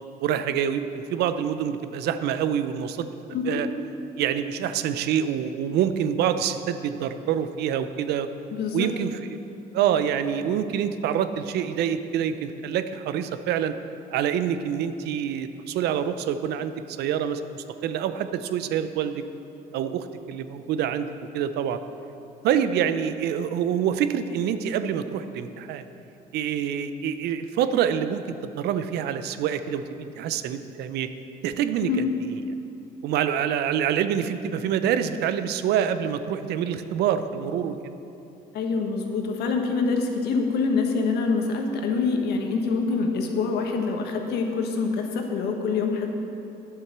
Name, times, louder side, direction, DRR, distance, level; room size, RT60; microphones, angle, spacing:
voice 1, 0.2-3.1 3.4-3.7 4.2-8.3 8.7-9.4 9.7-13.7 14.1-19.2 19.7-21.8 22.4-25.8 26.3-28.2 28.6-31.1 31.4-32.0 33.0-37.8, right 9 dB, 75° right, 11 dB, 0.6 m, -26 dB
voice 2, 8.5-8.9 31.8-32.0 38.5-46.1, left 4 dB, 75° left, 3 dB, 1.3 m, -25 dB
9.8 x 7.6 x 6.0 m, 2.8 s
cardioid pair, 110°, 17 cm